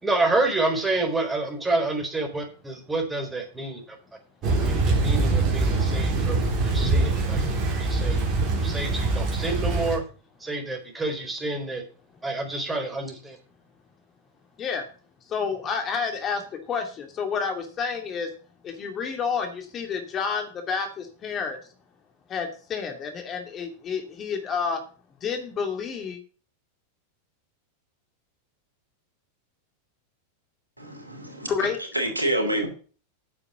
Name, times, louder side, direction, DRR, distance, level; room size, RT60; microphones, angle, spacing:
voice 1, 0.0-3.8 4.6-7.4 7.7-8.3 8.6-10.0 10.4-11.8 12.2-13.4, right 2 dB, 10° right, 4.0 m, -28 dB
Thunder / Rain, 4.4-10.0, right 3 dB, 35° right, 3.7 m, -23 dB
voice 2, 12.1-12.4 14.6-14.9 15.2-18.3 18.6-21.7 22.3-24.8 25.2-26.2 31.5-31.8, left 6 dB, 30° left, 2.7 m, -30 dB
voice 3, 30.8-31.5 31.9-32.7, right 1 dB, 85° right, 2.7 m, -27 dB
9.6 x 6.9 x 6.9 m
figure-of-eight pair, 90°, 0 cm